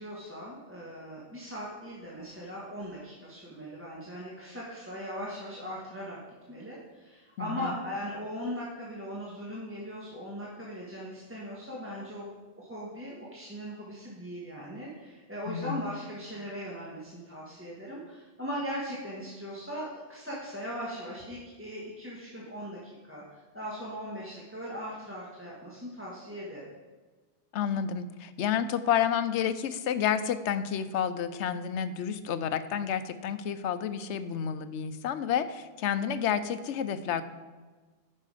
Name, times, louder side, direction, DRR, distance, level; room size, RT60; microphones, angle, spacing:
voice 1, 0.0-6.2 6.5-12.3 12.6-26.6, equal, 10° right, -6 dB, 1.6 m, -39 dB
voice 2, 7.4-7.7 15.5-15.9 27.5-37.2, left 8 dB, 80° left, 12 dB, 0.9 m, -30 dB
9.9 x 6.1 x 4.9 m, 1.3 s
omnidirectional pair, 1.2 m